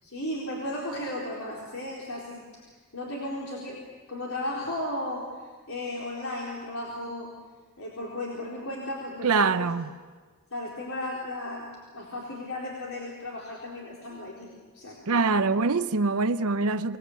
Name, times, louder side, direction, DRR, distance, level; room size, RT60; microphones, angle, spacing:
voice 1, 0.0-7.3 7.8-9.7 10.5-15.5, left 1 dB, 70° left, 4.1 m, -35 dB
voice 2, 9.2-9.9 15.1-17.0, right 4 dB, 75° right, 0.8 m, -24 dB
26.5 x 20.0 x 8.5 m
head